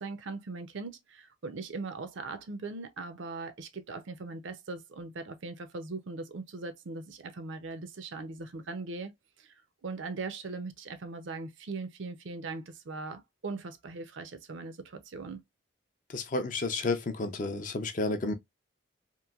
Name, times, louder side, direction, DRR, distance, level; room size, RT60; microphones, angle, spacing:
voice 1, 0.0-9.1 9.4-9.5 9.8-15.4, right 3 dB, 65° right, 0.5 m, -40 dB
voice 2, 16.1-18.3, left 3 dB, 40° left, 0.4 m, -31 dB
3.0 x 2.5 x 2.3 m
head